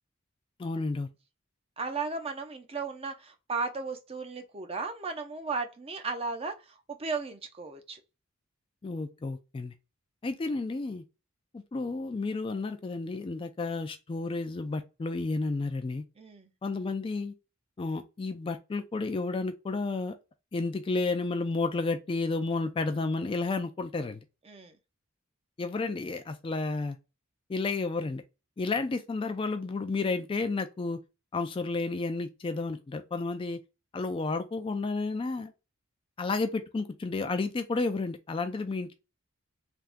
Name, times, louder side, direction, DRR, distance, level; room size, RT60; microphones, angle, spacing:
voice 1, 0.6-1.1 8.8-9.7 10.2-11.0 11.5-16.0 16.6-17.3 17.8-20.2 20.5-24.2 25.6-27.0 27.5-28.2 28.6-31.0 31.3-33.6 33.9-35.5 36.2-38.9, left 3 dB, 25° left, 0.3 m, -31 dB
voice 2, 1.8-6.5 6.9-8.0 16.2-16.5 24.5-24.7, right 4 dB, 30° right, 0.5 m, -35 dB
3.4 x 2.3 x 2.4 m
head